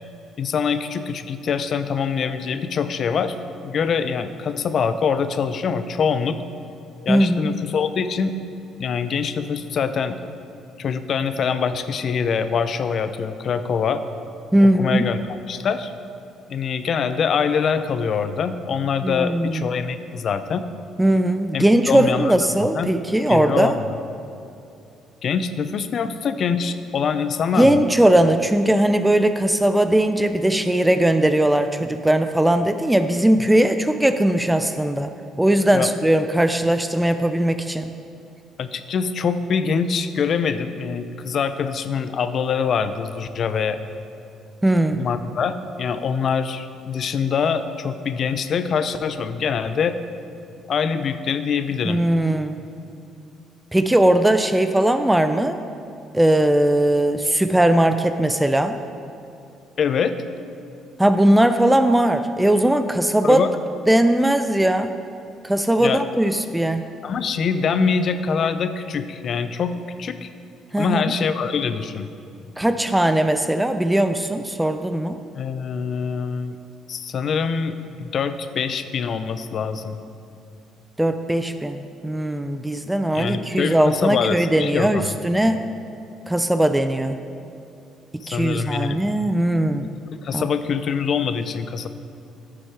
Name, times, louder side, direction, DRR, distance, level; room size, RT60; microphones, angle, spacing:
voice 1, 0.4-3.4 3.6-6.4 7.1-8.3 8.8-10.2 10.8-14.0 14.8-15.9 16.5-20.6 21.5-22.3 22.7-22.9 23.3-23.9 25.2-27.8 35.7-35.9 38.6-43.8 44.9-50.0 50.7-52.0 59.8-60.2 63.2-63.5 65.8-66.0 67.0-69.7 70.0-70.3 70.8-72.1 75.3-76.6 76.9-80.0 83.1-85.1 88.3-89.0 90.2-91.9, left 6 dB, 55° left, 11 dB, 0.5 m, -24 dB
voice 2, 7.1-7.5 14.5-15.0 19.0-19.7 21.0-23.8 27.6-35.1 35.4-37.9 44.6-45.0 51.8-52.6 53.7-55.6 56.1-58.8 61.0-63.4 63.9-64.9 65.4-66.8 70.7-71.1 72.6-75.2 81.0-85.6 86.3-87.2 88.3-89.9 90.3-90.5, right 1 dB, 10° right, 9 dB, 0.4 m, -19 dB
9.7 x 6.2 x 4.7 m, 2.7 s
supercardioid pair, 70°, 0 cm